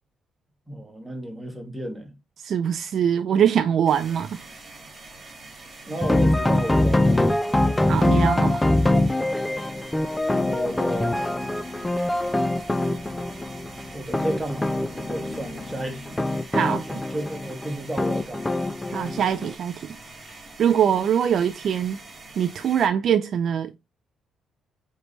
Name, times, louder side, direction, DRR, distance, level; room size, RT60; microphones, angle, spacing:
voice 1, 0.7-2.1 5.9-7.8 10.3-11.2 13.9-16.2 16.9-18.6, right 1 dB, 10° right, 1.4 m, -33 dB
voice 2, 2.4-4.4 7.9-8.6 16.5-16.8 18.9-19.7 20.6-22.0 22.4-23.8, right 8 dB, 60° right, 0.3 m, -22 dB
sound 1, 3.9-22.9, right 2 dB, 30° right, 1.6 m, -45 dB
sound 2, 6.0-19.5, left 1 dB, 15° left, 0.4 m, -23 dB
sound 3, 9.1-21.0, left 2 dB, 65° left, 1.2 m, -48 dB
4.9 x 3.2 x 3.1 m
cardioid pair, 90°, 0 cm